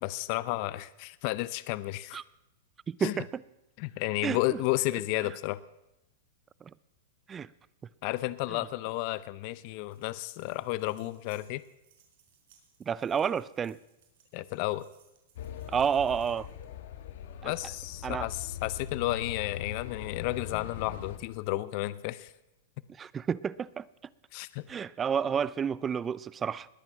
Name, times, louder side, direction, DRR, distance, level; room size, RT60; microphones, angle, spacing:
voice 1, 0.0-2.2 3.0-3.2 3.8-5.6 8.0-11.6 14.3-14.9 17.4-22.3 24.3-24.6, left 18 dB, 50° left, 0.5 m, -32 dB
voice 2, 2.9-3.3 4.2-4.4 7.3-7.5 12.9-13.8 15.7-16.5 17.4-17.5 18.0-18.3 23.0-23.9 24.7-26.7, right 7 dB, 20° right, 0.4 m, -30 dB
sound 1, 9.8-16.7, right 8 dB, 65° right, 4.0 m, -65 dB
sound 2, 15.4-21.2, left 9 dB, 70° left, 1.4 m, -41 dB
20.5 x 8.9 x 5.8 m
hypercardioid pair, 135°, 0 cm